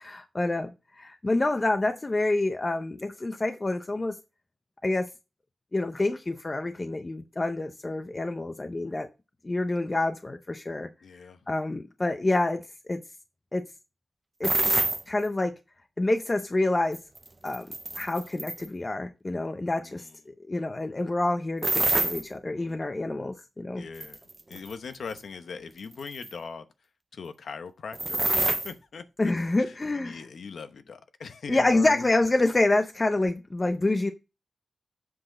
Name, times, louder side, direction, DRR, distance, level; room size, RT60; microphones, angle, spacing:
voice 1, 0.0-4.2 4.8-5.1 5.7-9.1 9.4-10.9 11.5-13.0 13.5-13.6 14.4-14.6 15.1-15.5 16.0-17.0 17.4-23.8 29.2-30.2 31.5-34.1, left 2 dB, 25° left, 0.6 m, -27 dB
voice 2, 11.0-11.5 19.8-20.2 22.6-23.0 23.8-24.2 24.5-26.7 27.1-29.0 29.5-32.1, left 5 dB, 75° left, 0.9 m, -40 dB
sound 1, 14.4-15.0 16.9-18.7 21.6-22.2 24.0-24.7 25.2-25.3 26.1-26.3 27.9-28.7, right 2 dB, 25° right, 0.5 m, -26 dB
7.8 x 6.0 x 3.8 m
wide cardioid pair, 150°, 0 cm